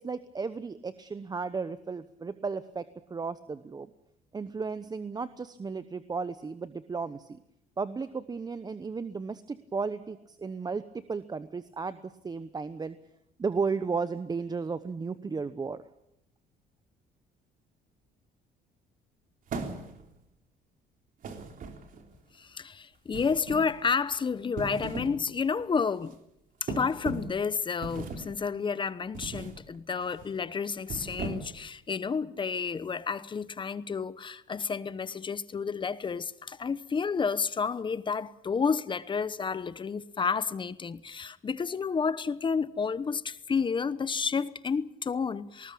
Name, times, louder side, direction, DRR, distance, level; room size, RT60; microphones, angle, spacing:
voice 1, 0.0-3.9 4.3-7.4 7.8-13.0 13.4-15.8, right 4 dB, 25° right, 0.9 m, -34 dB
sound 1, 19.5-20.2 21.2-22.1 23.1-23.8 24.4-25.2 25.6-25.8 26.7-27.4 27.8-28.4 29.1-29.6 30.0-30.3 30.8-31.7, right 4 dB, 55° right, 3.4 m, -38 dB
voice 2, 22.3-26.2 26.6-45.7, left 5 dB, 30° left, 0.9 m, -30 dB
19.5 x 19.5 x 8.6 m
cardioid pair, 110°, 17 cm